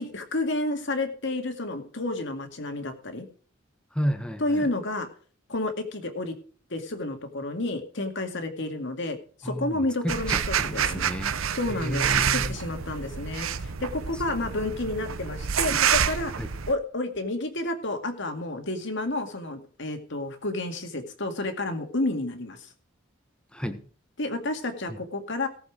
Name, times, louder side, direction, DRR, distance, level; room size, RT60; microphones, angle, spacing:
voice 1, 0.0-3.3 4.4-5.1 5.5-6.4 6.7-11.1 11.5-13.5 13.8-16.3 16.7-22.7 24.2-25.5, left 2 dB, 60° left, 6 dB, 2.1 m, -30 dB
voice 2, 3.9-4.7 9.4-11.4 11.7-12.5 16.4-16.5 23.5-23.8, equal, 5° left, 9 dB, 1.2 m, -32 dB
sound 1, 10.1-16.7, right 8 dB, 85° right, 0.8 m, -28 dB
18.0 x 7.1 x 4.9 m, 0.43 s
head